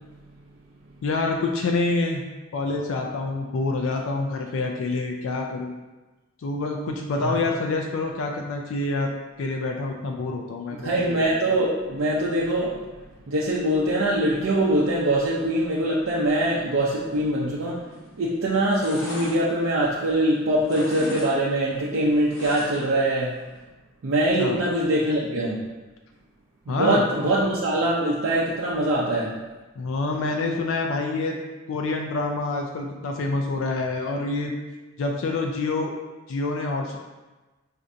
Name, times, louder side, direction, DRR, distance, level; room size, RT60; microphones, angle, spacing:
voice 1, 1.0-2.2 2.5-5.7 6.4-9.1 9.4-10.9 24.4-24.6 26.7-27.1 29.8-31.4 31.7-34.6 35.0-35.9 36.3-37.0, left 3 dB, 85° left, 2 dB, 0.4 m, -27 dB
voice 2, 10.8-12.8 13.3-17.8 18.2-23.3 24.0-25.6 26.7-29.3, right 1 dB, 85° right, -6 dB, 0.5 m, -23 dB
sound 1, 17.9-18.2 18.5-20.3 20.6-21.3 21.6-23.0 23.4-23.5, left 1 dB, 70° left, 0.9 m, -38 dB
4.3 x 2.5 x 2.5 m, 1.2 s
head